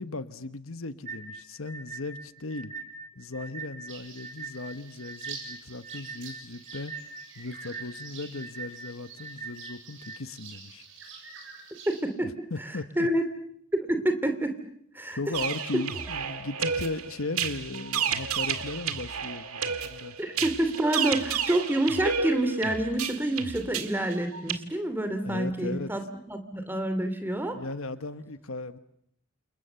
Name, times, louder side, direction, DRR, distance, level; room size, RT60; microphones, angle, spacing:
voice 1, 0.0-2.7 3.1-6.9 7.3-10.9 12.2-13.1 15.1-20.1 25.2-25.9 27.5-28.8, left 2 dB, 70° left, 12 dB, 1.2 m, -37 dB
sound 1, 1.1-10.2, right 4 dB, 30° right, 1.7 m, -42 dB
sound 2, 3.9-12.0, right 5 dB, 60° right, 7.4 m, -47 dB
voice 2, 11.9-12.3 13.0-13.2 13.7-14.6 14.9-15.2 20.2-26.0 26.3-27.6, right 1 dB, 10° right, 7 dB, 2.7 m, -27 dB
sound 3, 15.3-24.6, right 7 dB, 85° right, 1.9 m, -31 dB
28.5 x 28.5 x 7.0 m, 0.69 s
head